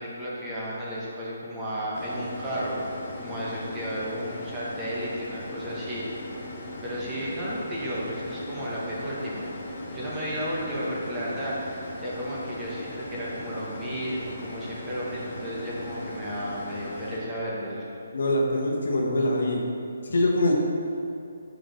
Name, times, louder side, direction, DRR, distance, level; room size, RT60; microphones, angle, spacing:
voice 1, 0.0-6.0 6.8-17.9, equal, 10° right, -7 dB, 0.9 m, -33 dB
sound 1, 1.9-17.2, left 1 dB, 40° left, 1.0 m, -38 dB
voice 2, 18.1-19.7 20.0-20.5, left 1 dB, 70° left, -1 dB, 1.1 m, -24 dB
6.0 x 5.0 x 3.9 m, 2.6 s
hypercardioid pair, 170°, 0 cm